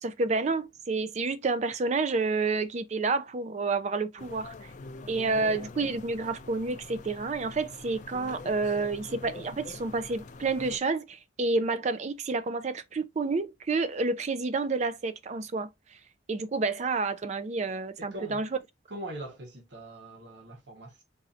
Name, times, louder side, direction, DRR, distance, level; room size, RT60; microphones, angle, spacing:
voice 1, 0.0-4.5 5.1-15.7 16.3-18.5, right 3 dB, 40° right, 0.4 m, -29 dB
sound 1, 4.2-10.8, left 3 dB, 45° left, 0.4 m, -44 dB
voice 2, 18.0-18.5 18.9-21.0, right 1 dB, 80° right, 1.1 m, -42 dB
4.2 x 2.7 x 2.4 m
head